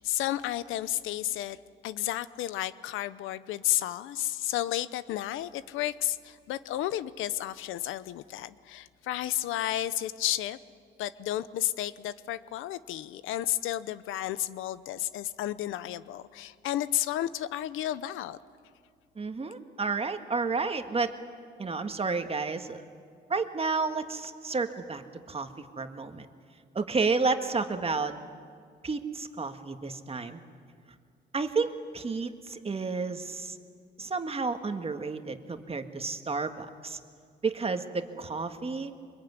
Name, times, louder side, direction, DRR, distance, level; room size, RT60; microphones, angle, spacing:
voice 1, 0.0-1.6 1.8-10.6 11.0-18.4, left 13 dB, 90° left, 16 dB, 0.8 m, -32 dB
voice 2, 19.2-21.1 21.6-22.8 23.3-25.0 25.3-25.5 25.8-26.3 26.7-28.2 28.8-30.4 31.3-33.6 34.0-37.0 37.4-38.9, right 4 dB, 30° right, 7 dB, 1.8 m, -31 dB
24.5 x 22.0 x 9.7 m, 2.2 s
cardioid pair, 90°, 20 cm